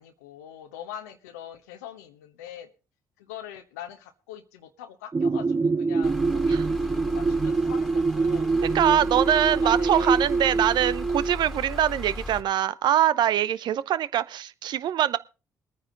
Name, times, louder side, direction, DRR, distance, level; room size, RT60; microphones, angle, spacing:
voice 1, 0.0-2.7 3.2-8.5 8.9-10.2 13.5-13.6, left 10 dB, 85° left, 1.0 m, -43 dB
sound 1, 5.1-11.3, right 4 dB, 25° right, 0.6 m, -25 dB
sound 2, 6.0-12.4, left 2 dB, 5° right, 2.5 m, -37 dB
voice 2, 8.7-15.2, right 11 dB, 60° right, 0.7 m, -23 dB
22.0 x 9.5 x 3.8 m
hypercardioid pair, 45°, 8 cm